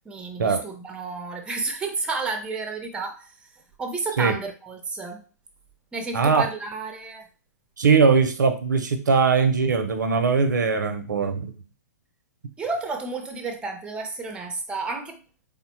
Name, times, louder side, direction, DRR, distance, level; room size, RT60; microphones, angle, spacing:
voice 1, 0.1-3.3 3.8-5.2 5.9-7.3 12.6-15.2, right 4 dB, 10° right, 4 dB, 0.5 m, -31 dB
voice 2, 6.1-6.5 7.8-11.6, right 5 dB, 80° right, 8 dB, 0.5 m, -20 dB
3.3 x 2.1 x 2.9 m, 0.36 s
hypercardioid pair, 125°, 10 cm